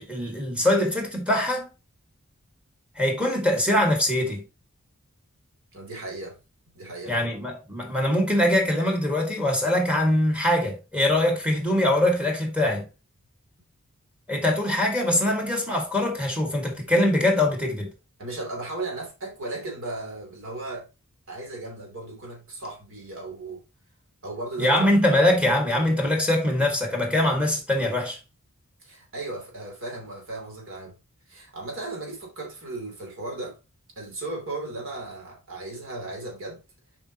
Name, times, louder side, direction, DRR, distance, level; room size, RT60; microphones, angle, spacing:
voice 1, 0.0-1.7 3.0-4.4 7.1-12.9 14.3-17.9 24.6-28.2, left 1 dB, 5° right, 1.7 m, -23 dB
voice 2, 5.7-6.4 6.7-7.2 18.2-20.9 21.3-23.6 24.2-24.8 28.8-31.0 31.3-33.6 34.0-36.6, right 2 dB, 65° right, 2.9 m, -36 dB
7.0 x 5.1 x 2.9 m
head